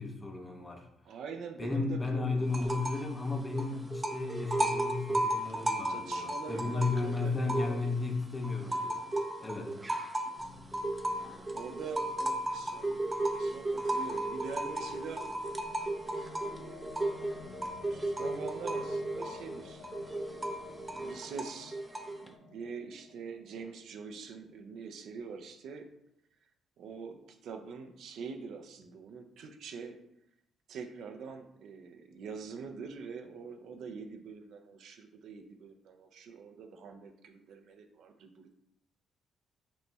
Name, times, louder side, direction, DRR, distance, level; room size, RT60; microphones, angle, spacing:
voice 1, 0.0-0.9 1.6-9.0 9.4-9.7, left 3 dB, 25° left, 3 dB, 0.6 m, -34 dB
voice 2, 1.0-2.6 5.9-7.9 9.6-10.0 11.5-13.0 13.3-15.3 16.4-16.9 17.9-21.8 22.2-25.9 26.8-30.0 30.7-38.5, right 5 dB, 75° right, 5 dB, 0.4 m, -45 dB
sound 1, 2.5-3.1 3.4-8.0 8.4-22.3, right 1 dB, 15° right, 0.4 m, -35 dB
sound 2, 10.4-21.1, left 1 dB, 70° left, 1.0 m, -56 dB
sound 3, 13.9-24.1, left 7 dB, 90° left, 0.3 m, -52 dB
5.2 x 3.0 x 2.3 m, 0.80 s
cardioid pair, 90°, 0 cm